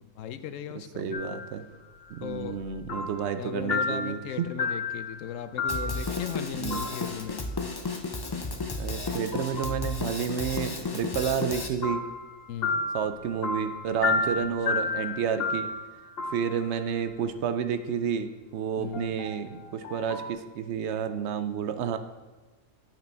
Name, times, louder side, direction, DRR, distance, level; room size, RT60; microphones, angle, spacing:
voice 1, 0.0-1.4 2.2-2.6 3.4-7.5 12.5-12.8 14.1-15.0 18.8-19.2, left 9 dB, 90° left, 11 dB, 1.0 m, -38 dB
voice 2, 1.0-1.7 2.1-4.4 6.6-6.9 8.8-12.0 12.9-15.7 16.3-22.0, right 7 dB, 70° right, 9 dB, 0.8 m, -30 dB
sound 1, 1.1-1.5 2.0-3.4 3.7-6.4 6.7-7.2 9.1-9.9 11.8-17.1 18.9-20.3, left 3 dB, 55° left, 1.1 m, -32 dB
Drum kit, 5.7-11.7, left 3 dB, 35° left, 0.4 m, -33 dB
8.9 x 6.0 x 4.4 m, 1.2 s
omnidirectional pair, 1.3 m